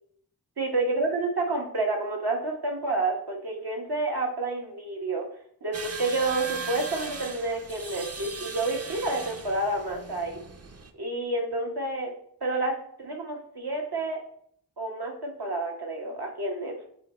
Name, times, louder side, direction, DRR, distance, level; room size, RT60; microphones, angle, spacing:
voice 1, 0.6-5.3 5.6-10.4 10.9-12.1 12.4-14.2 14.8-16.8, right 2 dB, 75° right, 0 dB, 1.3 m, -29 dB
sound 1, 5.7-10.9, right 4 dB, 40° right, 0.6 m, -39 dB
7.9 x 3.0 x 4.3 m, 0.65 s
wide cardioid pair, 50°, 38 cm